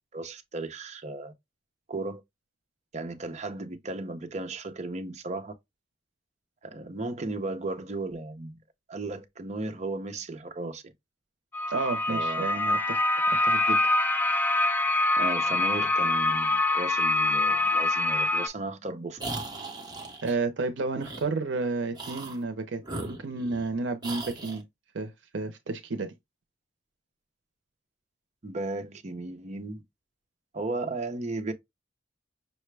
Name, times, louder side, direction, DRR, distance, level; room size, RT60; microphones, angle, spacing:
voice 1, 0.0-1.3 1.9-2.2 2.9-5.5 6.6-8.6 8.9-10.8 12.1-12.5 15.2-19.3 20.3-20.4 28.4-29.8 30.5-31.5, right 2 dB, 40° right, 0.6 m, -35 dB
sound 1, 11.5-18.5, left 2 dB, 10° left, 0.3 m, -25 dB
voice 2, 11.7-13.0 13.4-13.8 20.2-22.8 23.1-24.6 24.9-26.1, right 3 dB, 80° right, 0.6 m, -31 dB
sound 2, 19.2-20.3 21.0-21.3 21.9-22.4 22.8-23.7 24.0-24.6, right 2 dB, 25° right, 0.9 m, -38 dB
5.7 x 2.1 x 3.2 m
head